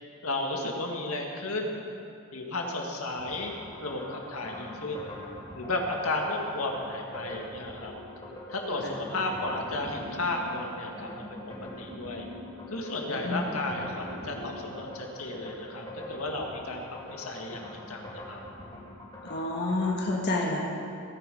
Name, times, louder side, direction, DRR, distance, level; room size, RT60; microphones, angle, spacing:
voice 1, 0.2-1.8 2.3-3.5 3.8-5.1 5.5-7.9 8.5-11.4 11.8-12.3 12.7-16.8 17.1-18.4, left 2 dB, 80° left, 1 dB, 2.0 m, -33 dB
sound 1, 3.2-20.0, left 1 dB, 20° left, 2.9 m, -43 dB
voice 2, 13.1-13.5 19.3-20.6, left 2 dB, 50° left, -2 dB, 1.5 m, -29 dB
17.5 x 9.3 x 5.4 m, 2.6 s
head